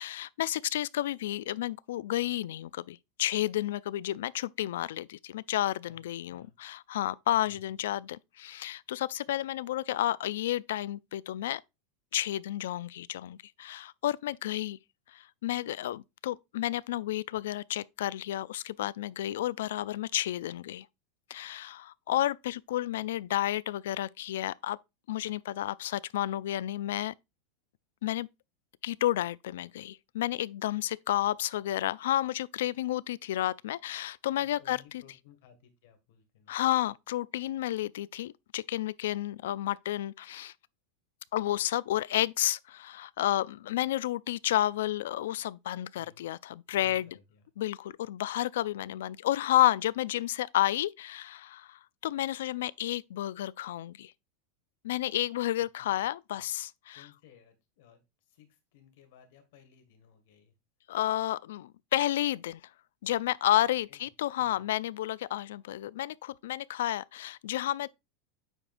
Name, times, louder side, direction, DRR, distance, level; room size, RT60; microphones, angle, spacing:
voice 1, 0.0-11.6 12.1-14.8 15.1-20.9 21.3-24.8 25.1-27.1 28.0-28.3 28.8-35.0 36.5-40.5 41.3-47.1 47.6-54.1 54.8-57.0 60.9-62.6 63.0-67.9, left 13 dB, 80° left, 0.3 m, -31 dB
voice 2, 34.4-36.6 46.0-46.2 46.7-47.5 55.8-56.1 56.3-56.5 56.9-60.5 63.9-64.1 64.4-64.6, left 8 dB, 60° left, 1.9 m, -59 dB
8.8 x 4.9 x 2.5 m
supercardioid pair, 170°, 0 cm